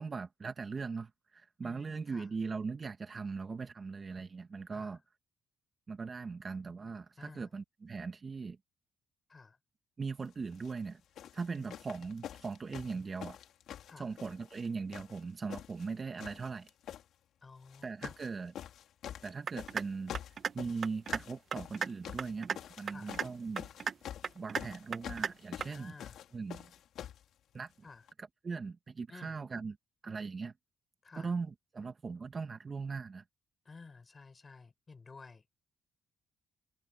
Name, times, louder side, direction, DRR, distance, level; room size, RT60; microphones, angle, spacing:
voice 1, 0.0-5.0 5.9-8.6 10.0-11.0 11.3-13.4 14.0-16.7 17.8-18.5 19.2-20.1 20.5-22.5 22.8-23.7 24.3-25.9 26.3-26.7 27.5-27.7 28.2-29.8 30.0-30.5 31.2-33.2, right 4 dB, 35° right, 1.6 m, -39 dB
voice 2, 1.6-2.3 4.7-5.0 7.2-7.5 9.3-9.6 11.6-11.7 13.8-14.1 17.4-18.2 22.8-23.1 25.7-26.2 27.8-28.0 29.1-29.3 31.0-31.3 33.7-35.4, left 4 dB, 30° left, 5.9 m, -53 dB
sound 1, 10.5-10.8 11.2-14.7 14.9-15.9 16.2-17.0 17.7-18.3 18.5-27.2 28.1-28.2, left 10 dB, 75° left, 3.5 m, -46 dB
sound 2, 19.5-19.9 20.1-20.5 20.8-21.2 21.5-21.9 22.2-22.6 22.9-23.3 23.6-23.9 24.2-24.6 24.9-25.3 25.6-25.7, right 6 dB, 50° right, 1.2 m, -34 dB
cardioid pair, 90°, 0 cm